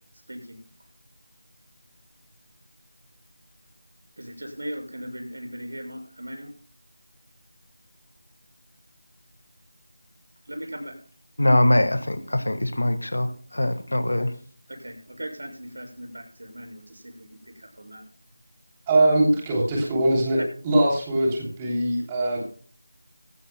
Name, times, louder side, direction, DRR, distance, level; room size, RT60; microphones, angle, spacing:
voice 1, 0.3-0.6 4.2-6.5 10.5-11.0 14.7-18.0 20.4-20.5, equal, 85° right, 6.9 m, -38 dB
voice 2, 11.4-14.3, left 1 dB, 90° left, 1.6 m, -22 dB
voice 3, 18.9-20.4 20.6-22.4, right 1 dB, 15° right, 3.1 m, -21 dB
20.0 x 16.0 x 2.2 m
figure-of-eight pair, 170°, 0 cm